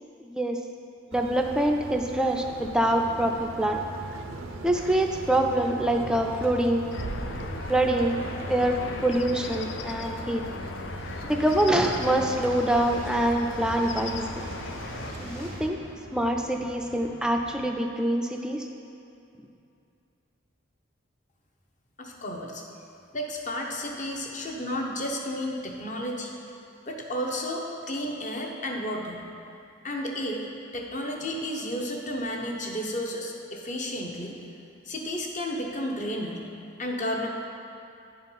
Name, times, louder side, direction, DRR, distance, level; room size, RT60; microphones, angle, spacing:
voice 1, 0.2-0.6 1.1-3.8 4.6-6.9 7.7-8.2 8.5-10.4 11.2-14.4 15.2-15.8 16.1-18.7, right 1 dB, 5° right, 2 dB, 0.4 m, -25 dB
sound 1, 1.1-15.7, right 2 dB, 90° right, 0.6 m, -39 dB
sound 2, 2.8-17.7, left 1 dB, 80° left, 1.7 m, -45 dB
sound 3, 6.9-15.1, left 4 dB, 60° left, 0.4 m, -38 dB
voice 2, 22.0-22.6 23.1-26.3 26.9-29.2 29.8-30.5 30.7-34.4 34.9-36.4 36.8-37.3, left 1 dB, 35° left, 1 dB, 0.8 m, -32 dB
9.6 x 4.4 x 5.5 m, 2.6 s
head